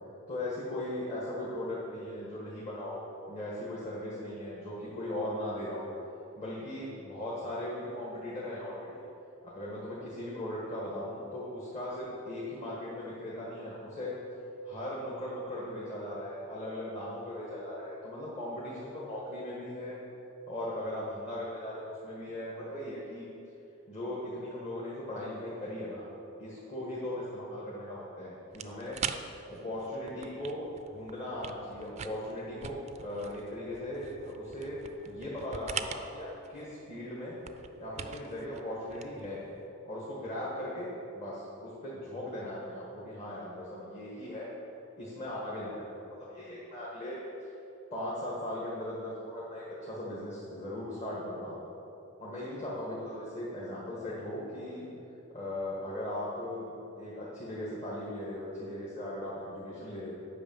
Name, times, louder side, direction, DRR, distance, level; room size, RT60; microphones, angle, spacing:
voice 1, 0.3-5.9 6.4-9.0 9.4-14.1 14.6-20.0 20.5-23.2 23.9-26.0 26.4-29.0 29.5-37.4 37.8-39.4 39.8-44.5 44.9-45.8 46.2-47.5 47.9-51.6 52.2-54.9 55.3-56.7 57.0-60.1, left 1 dB, 35° left, -6 dB, 1.7 m, -38 dB
sound 1, 28.5-39.7, right 7 dB, 35° right, 0.4 m, -43 dB
8.7 x 5.7 x 7.1 m, 2.7 s
head